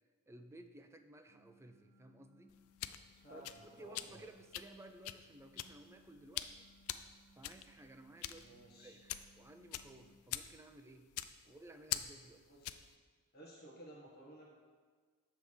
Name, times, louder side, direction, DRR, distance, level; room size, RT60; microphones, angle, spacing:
voice 1, 0.3-2.5 3.3-3.4 3.7-6.7 7.4-11.1 11.5-12.4, right 1 dB, 10° right, 7 dB, 0.3 m, -56 dB
sound 1, 1.3-10.2, equal, 85° right, 1.3 m, -68 dB
sound 2, 2.5-12.9, left 12 dB, 70° left, 0.3 m, -45 dB
voice 2, 3.2-4.2 8.4-9.0 12.5-12.8 13.3-14.5, right 1 dB, 45° left, -4 dB, 1.2 m, -56 dB
7.1 x 3.4 x 6.3 m, 1.5 s
head